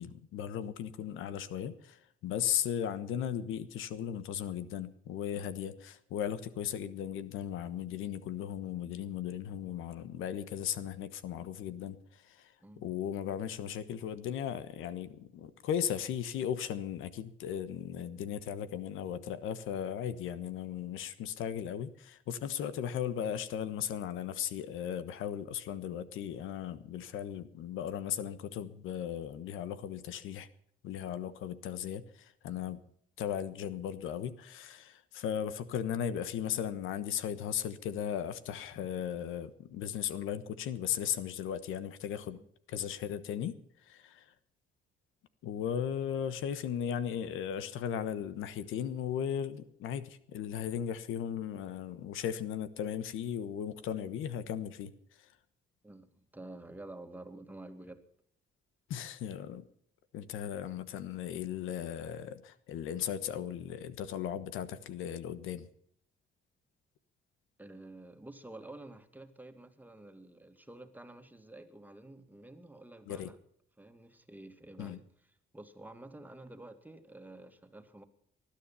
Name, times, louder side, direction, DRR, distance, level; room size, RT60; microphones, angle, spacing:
voice 1, 0.0-30.5 30.8-32.8 33.2-42.4 42.7-44.3 45.4-55.3 58.9-59.6 60.1-65.7 73.1-73.3 74.8-75.0, left 9 dB, 90° left, 13 dB, 1.3 m, -37 dB
voice 2, 55.8-58.0 67.6-73.4 73.8-75.0 75.5-78.0, right 2 dB, 10° right, 8 dB, 2.2 m, -50 dB
19.5 x 12.0 x 5.7 m, 0.67 s
cardioid pair, 90°, 20 cm